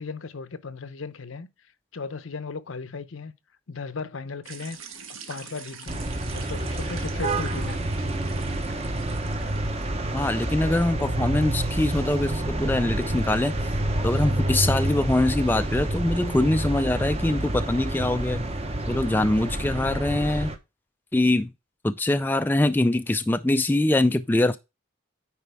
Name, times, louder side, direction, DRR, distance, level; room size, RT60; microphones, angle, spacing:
voice 1, 0.0-1.5 1.9-3.3 3.7-4.8 5.3-6.1 6.3-7.8, left 4 dB, 75° left, 0.7 m, -36 dB
sound 1, 4.4-10.0, right 6 dB, 85° right, 1.4 m, -44 dB
sound 2, 5.9-20.6, right 1 dB, 30° right, 0.8 m, -28 dB
voice 2, 10.1-13.5 14.0-18.5 18.9-20.5 21.1-21.5 21.8-24.6, left 1 dB, 10° left, 0.3 m, -23 dB
9.5 x 4.4 x 3.4 m
head